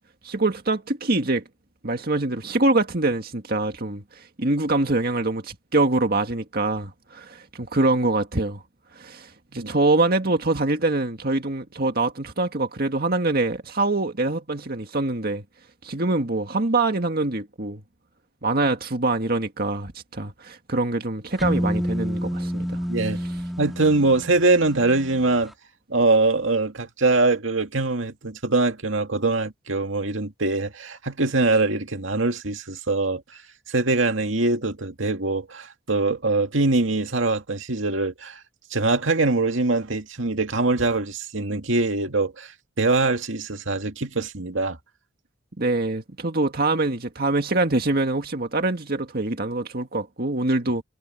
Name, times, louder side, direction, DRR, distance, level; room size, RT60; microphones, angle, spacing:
voice 1, 0.2-1.4 1.8-8.6 9.0-15.4 15.8-17.8 18.4-22.8 45.6-50.8, right 2 dB, 50° right, 1.9 m, -24 dB
sound 1, 21.4-25.2, equal, ahead, 1.7 m, -28 dB
voice 2, 22.9-23.2 23.6-25.5 25.9-33.2 33.7-38.4 38.7-42.5 42.8-44.8, right 3 dB, 80° right, 2.2 m, -23 dB
head